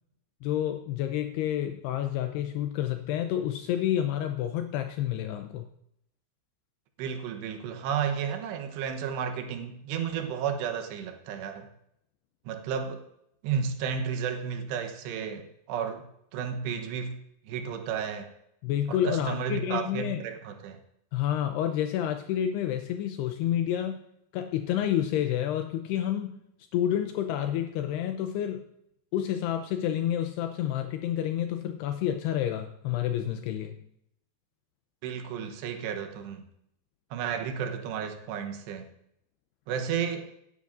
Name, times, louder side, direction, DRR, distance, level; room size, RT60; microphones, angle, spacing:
voice 1, 0.4-5.7 18.6-20.2 21.1-24.0 24.3-26.4 26.7-28.6 29.1-33.8, left 11 dB, 80° left, 7 dB, 2.6 m, -29 dB
voice 2, 7.0-11.7 12.5-13.0 13.4-16.1 16.3-17.2 17.4-18.3 18.9-20.8 35.0-36.4 37.1-38.9 39.7-40.3, right 7 dB, 80° right, 5 dB, 3.2 m, -32 dB
17.5 x 10.5 x 2.6 m, 0.75 s
omnidirectional pair, 4.8 m